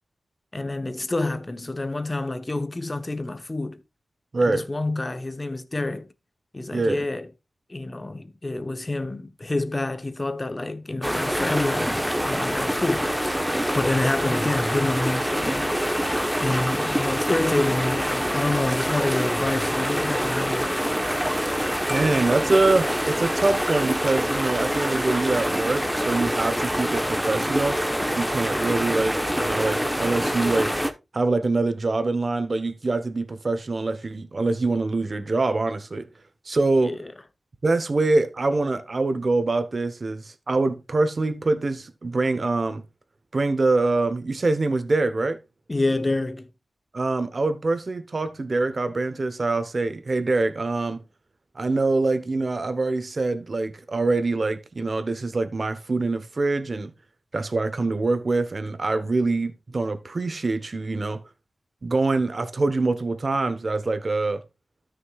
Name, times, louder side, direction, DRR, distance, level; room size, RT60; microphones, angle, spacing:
voice 1, 0.5-3.8 4.4-6.1 6.5-7.3 7.7-13.3 13.7-20.8 36.8-37.1 45.7-46.5, left 2 dB, 30° left, 1.1 m, -28 dB
voice 2, 4.3-4.6 6.7-7.0 21.9-27.8 28.2-30.8 31.1-36.1 36.5-37.0 37.6-42.8 43.3-45.4 46.9-51.0 51.5-56.9 57.3-61.2 61.8-64.4, right 3 dB, 50° right, 1.1 m, -24 dB
sound 1, 11.0-30.9, equal, 5° right, 1.1 m, -25 dB
13.0 x 6.2 x 2.4 m
wide cardioid pair, 75°, 0 cm